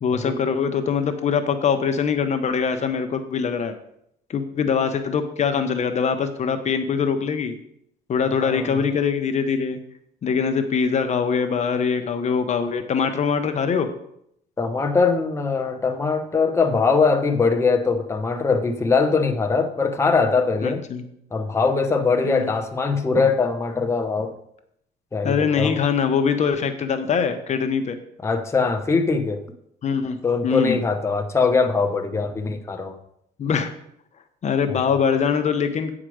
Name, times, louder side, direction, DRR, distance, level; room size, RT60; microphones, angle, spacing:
voice 1, 0.0-3.8 4.3-7.5 8.1-9.8 10.2-13.9 20.6-21.0 22.2-22.5 25.2-28.0 29.8-30.2 30.4-30.8 33.4-33.7 34.4-35.9, left 6 dB, 45° left, 8 dB, 0.9 m, -23 dB
voice 2, 8.4-8.8 14.6-20.8 21.3-24.3 25.1-25.8 28.2-29.4 30.2-33.0 34.7-34.9, left 4 dB, 15° left, 4 dB, 0.8 m, -22 dB
8.9 x 5.0 x 6.3 m, 0.75 s
cardioid pair, 110°, 17 cm